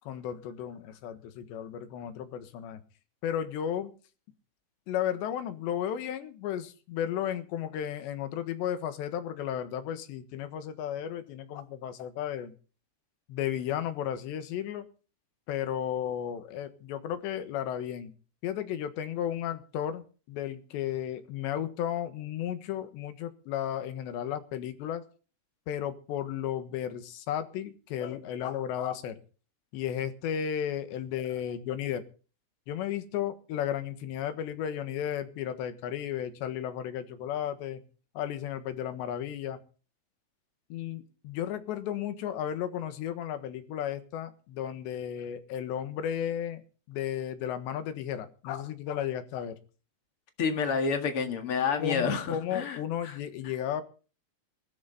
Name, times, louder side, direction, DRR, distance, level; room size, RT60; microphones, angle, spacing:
voice 1, 0.1-2.8 3.2-3.9 4.9-12.6 13.3-14.9 15.5-18.1 18.4-25.0 25.7-29.2 29.7-32.0 32.7-37.8 38.2-39.6 40.7-46.6 46.9-49.6 51.8-53.8, left 10 dB, 90° left, 10 dB, 3.7 m, -34 dB
voice 2, 50.4-53.2, left 5 dB, 50° left, 7 dB, 1.8 m, -29 dB
19.5 x 13.0 x 4.1 m, 0.37 s
omnidirectional pair, 5.0 m